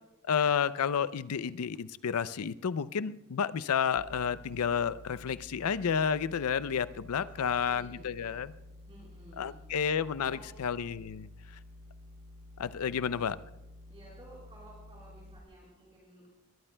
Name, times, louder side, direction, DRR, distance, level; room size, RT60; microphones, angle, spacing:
voice 1, 0.3-8.5 9.4-11.3 12.6-13.4, left 7 dB, 85° left, 15 dB, 0.5 m, -31 dB
sound 1, 4.0-15.4, left 2 dB, 85° right, 1.1 m, -51 dB
voice 2, 7.1-8.6 8.8-9.6 10.0-10.6 13.0-13.2 13.9-16.3, right 1 dB, 25° right, -5 dB, 4.2 m, -55 dB
21.5 x 20.0 x 2.2 m, 0.92 s
head